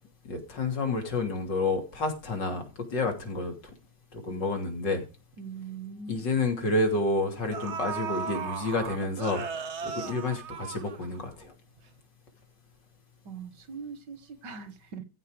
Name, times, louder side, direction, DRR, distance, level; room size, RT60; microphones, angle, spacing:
voice 1, 0.3-2.6 2.9-3.5 4.1-5.1 6.1-9.5 9.8-11.5, left 2 dB, 90° left, 3.6 m, -29 dB
sound 1, 5.3-5.4 5.8-6.0 7.0-7.1 7.5-11.4 11.8-11.9, right 6 dB, 45° right, 1.1 m, -36 dB
voice 2, 5.4-6.2 13.3-15.0, right 5 dB, 80° right, 2.0 m, -41 dB
14.5 x 5.5 x 5.0 m
omnidirectional pair, 1.9 m